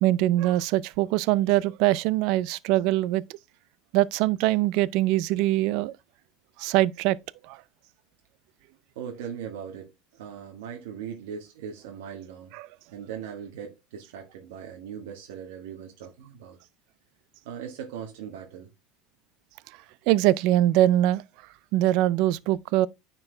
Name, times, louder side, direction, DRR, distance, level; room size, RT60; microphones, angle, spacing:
voice 1, 0.0-3.2 3.9-5.9 6.6-7.2 7.5-7.6 12.5-12.7 20.1-21.2 21.7-22.9, right 15 dB, 60° right, 0.4 m, -22 dB
voice 2, 8.9-12.5 12.9-16.6 17.4-18.7, right 8 dB, 85° right, 1.5 m, -39 dB
9.6 x 4.6 x 3.2 m
cardioid pair, 150°, 0 cm